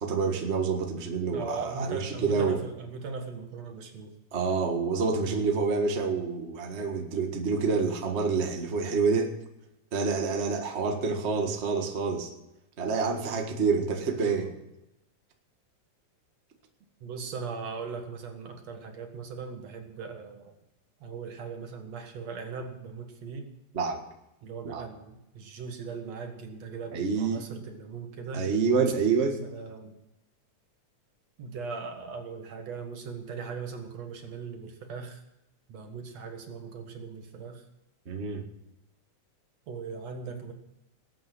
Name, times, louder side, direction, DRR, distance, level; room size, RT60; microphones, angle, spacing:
voice 1, 0.0-2.6 4.3-9.3 9.9-12.3 12.8-14.5 23.7-24.0 24.6-24.9 26.9-27.5 28.3-29.4 38.0-38.4, right 5 dB, 30° right, 3 dB, 1.6 m, -27 dB
voice 2, 1.3-4.1 14.2-14.5 17.0-20.5 21.0-23.5 24.4-28.5 29.2-30.0 31.4-35.2 35.7-37.6 39.7-40.5, right 5 dB, 65° right, 4 dB, 2.8 m, -39 dB
19.5 x 9.2 x 6.2 m, 0.89 s
omnidirectional pair, 3.3 m